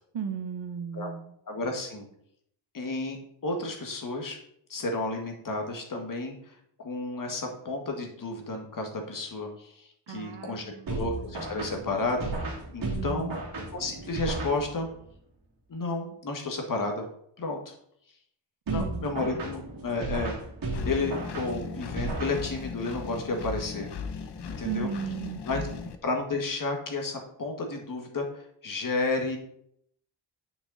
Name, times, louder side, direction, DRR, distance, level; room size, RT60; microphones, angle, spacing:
voice 1, 0.1-1.3 10.1-11.0 12.8-13.4 18.7-19.4 24.6-25.9, right 6 dB, 80° right, 7 dB, 1.2 m, -36 dB
voice 2, 1.5-2.1 2.7-3.2 3.4-4.4 4.7-13.3 13.7-14.9 15.7-17.0 17.4-17.7 18.7-20.3 20.9-23.9 24.6-24.9 25.5-25.6 26.0-29.4, left 3 dB, 45° left, 2 dB, 1.9 m, -32 dB
sound 1, 10.9-15.1 18.7-22.9, right 2 dB, 50° right, 2.5 m, -35 dB
Engine, 20.7-26.0, left 6 dB, 60° left, 0.9 m, -37 dB
9.6 x 5.9 x 4.1 m, 0.70 s
wide cardioid pair, 165°, 44 cm